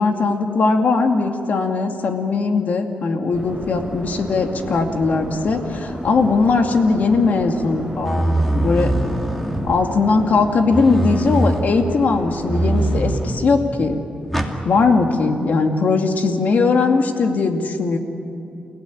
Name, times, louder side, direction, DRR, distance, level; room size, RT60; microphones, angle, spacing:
voice 1, 0.0-8.3 8.5-8.9 9.6-14.0 14.6-18.0, left 4 dB, 65° left, 4 dB, 2.4 m, -19 dB
sound 1, 3.3-13.0, equal, 15° right, 7.4 m, -32 dB
sound 2, 8.0-10.0 10.7-11.7 12.5-13.5 14.3-14.6, right 1 dB, 5° left, 2.5 m, -22 dB
30.0 x 16.5 x 10.0 m, 2.8 s
wide cardioid pair, 105°, 3 cm